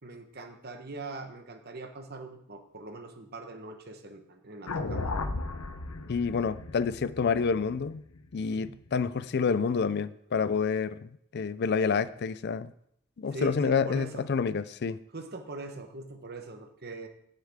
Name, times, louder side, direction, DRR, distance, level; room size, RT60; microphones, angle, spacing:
voice 1, 0.0-5.2 8.4-8.7 13.3-14.2 15.1-17.1, right 2 dB, 45° right, 1.2 m, -42 dB
sound 1, 4.7-8.9, left 3 dB, 75° left, 0.9 m, -36 dB
voice 2, 6.1-8.0 8.3-12.7 13.2-15.0, left 5 dB, 50° left, 0.4 m, -28 dB
17.0 x 6.6 x 3.6 m
head